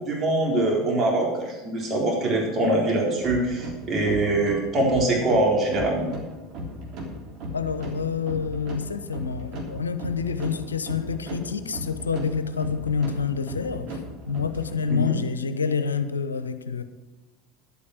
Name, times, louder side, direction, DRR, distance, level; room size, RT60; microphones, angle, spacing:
voice 1, 0.0-6.1 14.9-15.2, right 2 dB, 30° right, -1 dB, 3.9 m, -23 dB
sound 1, 3.2-15.0, equal, 50° right, 3.4 m, -37 dB
voice 2, 7.5-14.0 14.3-16.8, left 5 dB, 85° left, 11 dB, 0.8 m, -28 dB
11.0 x 8.7 x 6.4 m, 1.2 s
figure-of-eight pair, 75°, 0 cm